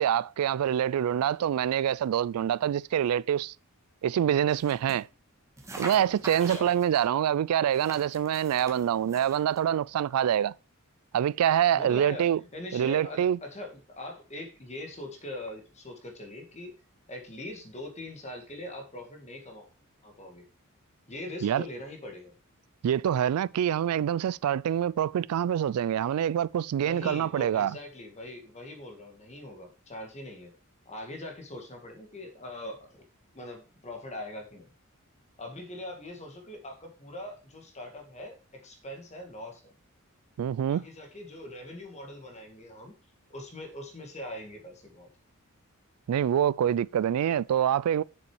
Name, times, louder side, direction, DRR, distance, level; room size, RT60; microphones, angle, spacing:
voice 1, 0.0-3.5 4.0-5.1 5.8-10.5 11.1-12.4 12.7-13.4 21.4-21.6 22.8-27.8 40.4-40.8 46.1-48.0, right 9 dB, 85° right, 0.3 m, -26 dB
sound 1, 4.5-5.0 5.6-7.1 7.7-9.6, right 2 dB, 15° right, 1.7 m, -44 dB
voice 2, 6.4-6.7 11.7-16.7 17.1-19.7 20.0-20.5 21.1-22.3 26.7-30.5 30.9-33.0 33.3-34.7 35.4-39.6 40.7-42.9 43.3-45.1, left 1 dB, 30° left, 2.0 m, -42 dB
7.0 x 7.0 x 4.6 m
head